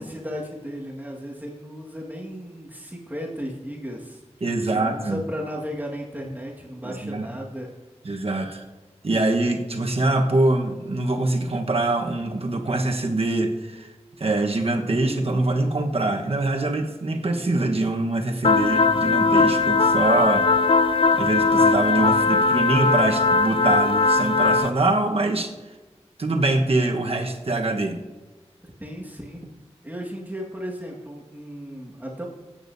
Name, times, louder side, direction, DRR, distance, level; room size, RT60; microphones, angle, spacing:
voice 1, 0.0-4.2 4.6-7.7 28.6-29.5 29.8-32.3, equal, 15° right, -2 dB, 1.6 m, -35 dB
voice 2, 4.4-5.2 6.8-7.3 8.0-8.6 9.0-13.9 14.2-20.5 21.2-25.5 26.2-28.0, right 2 dB, 60° right, 3 dB, 1.1 m, -24 dB
sound 1, 18.4-24.7, left 3 dB, 55° left, 0.4 m, -19 dB
20.5 x 8.8 x 2.7 m, 1.2 s
wide cardioid pair, 70°, 11 cm